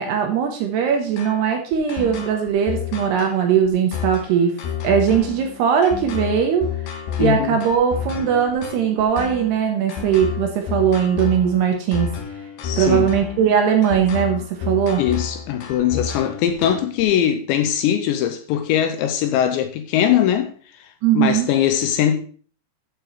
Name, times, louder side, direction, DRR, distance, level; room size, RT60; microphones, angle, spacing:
voice 1, 0.0-4.5 4.8-6.7 7.2-12.1 12.8-15.0 21.0-21.5, right 8 dB, 70° right, 2.6 m, -19 dB
sound 1, 1.2-17.0, left 7 dB, 65° left, 2.5 m, -30 dB
voice 2, 7.2-7.6 12.6-13.1 15.0-20.5 21.1-22.2, left 10 dB, 85° left, 2.7 m, -21 dB
13.5 x 6.8 x 3.2 m
omnidirectional pair, 5.6 m